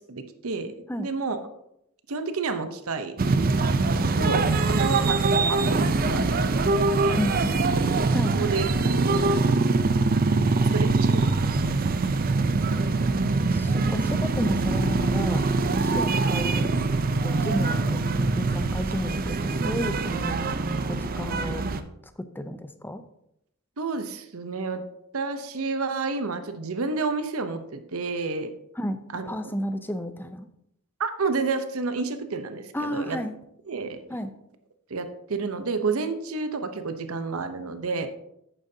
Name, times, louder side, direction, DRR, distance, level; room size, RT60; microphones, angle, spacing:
voice 1, 0.1-0.7 1.0-1.4 2.1-3.1 4.2-6.7 7.0-7.4 7.8-7.9 8.2-9.2 10.7-11.5 15.9-16.1 23.8-24.8 25.1-28.5 29.1-29.5 31.0-33.2 33.7-34.0 34.9-38.1, right 4 dB, 80° right, 9 dB, 0.8 m, -30 dB
sound 1, 3.2-21.8, right 3 dB, 45° right, 0.5 m, -23 dB
voice 2, 7.1-7.6 8.1-8.4 13.5-15.4 15.7-16.7 17.2-20.4 20.9-21.6 22.3-23.0 28.8-29.0 29.3-30.5 32.7-33.3 34.1-34.3, equal, 10° left, 9 dB, 0.6 m, -32 dB
11.0 x 8.8 x 2.8 m, 0.78 s
head